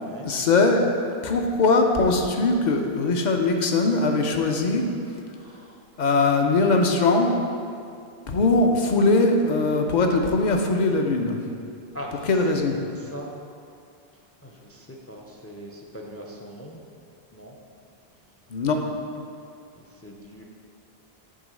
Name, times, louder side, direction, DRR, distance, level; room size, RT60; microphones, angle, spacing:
voice 1, 0.2-0.8 1.2-4.9 6.0-7.4 8.3-11.4 12.3-12.8 18.5-18.8, left 3 dB, 50° left, 3 dB, 0.7 m, -21 dB
voice 2, 5.3-5.8 11.9-12.3 13.0-13.3 14.4-16.8 17.3-17.6 19.8-20.4, equal, 20° left, 0 dB, 0.3 m, -41 dB
8.6 x 3.0 x 6.3 m, 2.4 s
omnidirectional pair, 1.1 m